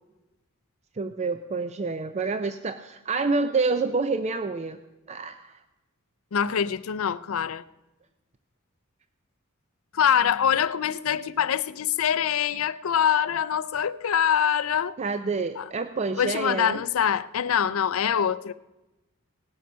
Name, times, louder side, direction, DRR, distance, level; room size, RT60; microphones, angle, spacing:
voice 1, 1.0-4.8 5.1-5.6 15.0-16.8, right 4 dB, 30° right, 0.4 m, -28 dB
voice 2, 6.3-7.6 9.9-15.0 15.6-15.7 16.2-18.5, left 8 dB, 75° left, 0.5 m, -24 dB
18.0 x 7.7 x 5.6 m
head